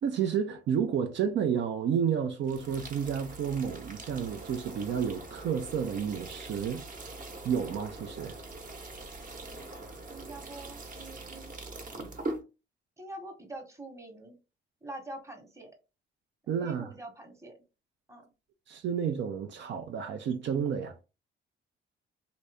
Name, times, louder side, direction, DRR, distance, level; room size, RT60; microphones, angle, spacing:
voice 1, 0.0-6.8 7.4-8.4 16.5-16.9 18.7-21.0, right 7 dB, 65° right, 0.6 m, -31 dB
sound 1, 2.4-12.4, right 2 dB, 45° right, 1.0 m, -42 dB
voice 2, 10.1-11.5 13.0-14.4 14.8-15.7 16.4-17.6 18.1-18.2, right 2 dB, 15° right, 1.1 m, -45 dB
3.0 x 2.7 x 3.4 m
cardioid pair, 90°, 20 cm